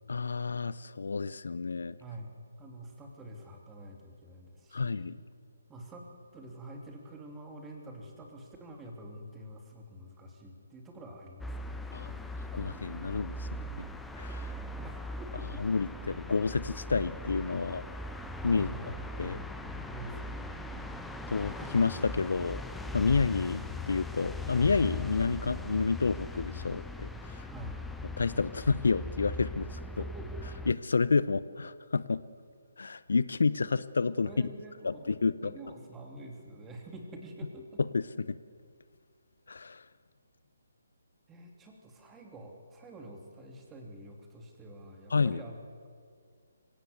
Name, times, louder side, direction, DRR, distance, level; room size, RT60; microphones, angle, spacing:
voice 1, 0.1-2.0 4.7-5.2 11.9-12.1 12.5-13.5 14.2-14.5 15.6-17.8 18.4-18.7 19.2-19.4 21.3-22.6 22.9-27.5 28.2-29.8 30.7-32.2 32.8-34.5 34.8-35.5 37.9-38.4 39.5-39.8 45.1-45.4, left 4 dB, 65° left, 17 dB, 0.6 m, -29 dB
voice 2, 2.0-5.2 5.7-12.3 14.8-15.6 18.5-19.4 19.8-20.9 27.4-27.8 30.0-30.3 33.6-33.7 34.2-37.8 41.3-45.6, right 1 dB, 10° right, 2 dB, 3.1 m, -47 dB
sound 1, 11.4-30.7, left 2 dB, 5° left, 1.0 m, -40 dB
25.0 x 17.0 x 8.0 m, 2.1 s
figure-of-eight pair, 140°, 0 cm